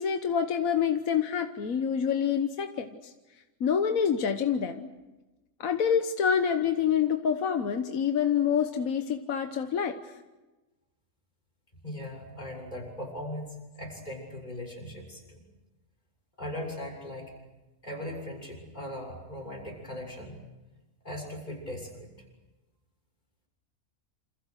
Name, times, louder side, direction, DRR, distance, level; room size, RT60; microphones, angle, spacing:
voice 1, 0.0-2.9 3.6-4.9 5.6-10.0, left 7 dB, 70° left, 7 dB, 1.5 m, -27 dB
voice 2, 11.8-15.4 16.4-17.3 17.8-20.4 21.0-22.1, left 1 dB, 30° left, 1 dB, 7.2 m, -39 dB
28.0 x 27.5 x 6.5 m, 1.1 s
omnidirectional pair, 1.5 m